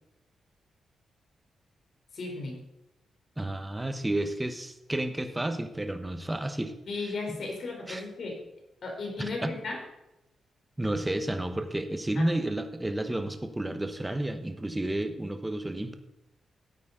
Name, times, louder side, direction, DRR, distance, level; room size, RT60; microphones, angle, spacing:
voice 1, 2.1-2.6 6.9-8.4 8.8-9.8 12.2-12.4, left 3 dB, 60° left, 1 dB, 3.6 m, -35 dB
voice 2, 3.4-6.7 7.3-7.4 7.9-8.0 9.2-9.5 10.8-15.9, right 1 dB, 10° right, 7 dB, 1.2 m, -31 dB
13.5 x 8.3 x 3.9 m, 0.91 s
cardioid pair, 85°, 0 cm